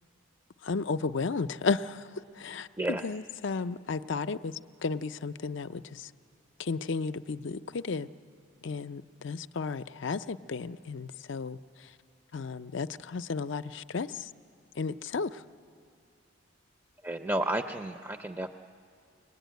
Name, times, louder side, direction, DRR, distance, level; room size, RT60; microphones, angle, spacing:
voice 1, 0.6-2.0 2.4-6.1 6.6-8.1 8.6-11.6 12.3-14.3 14.8-15.4, left 4 dB, 60° left, 13 dB, 0.5 m, -33 dB
voice 2, 17.0-18.6, right 1 dB, 10° right, 6 dB, 0.5 m, -32 dB
23.5 x 20.0 x 9.3 m, 2.2 s
head